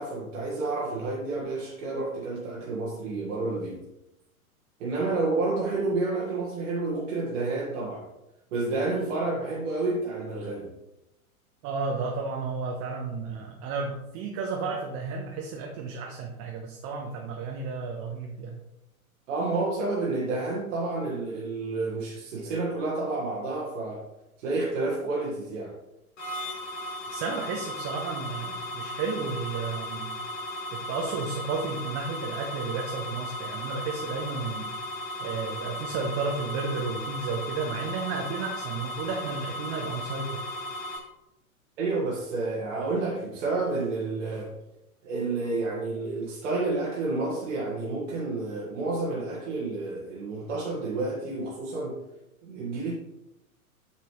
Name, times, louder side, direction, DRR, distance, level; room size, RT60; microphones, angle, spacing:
voice 1, 0.0-3.8 4.8-8.1 8.5-10.7 19.3-24.0 24.4-25.8 41.8-44.5 45.0-52.0 52.4-52.9, right 3 dB, 55° right, -4 dB, 1.7 m, -30 dB
voice 2, 11.6-18.6 27.1-30.1 30.7-34.7 35.2-40.4, right 4 dB, 35° right, 1 dB, 1.0 m, -32 dB
sound 1, 26.2-41.0, left 1 dB, 55° left, 3.0 m, -36 dB
8.6 x 5.9 x 3.1 m, 0.89 s
figure-of-eight pair, 100°, 44 cm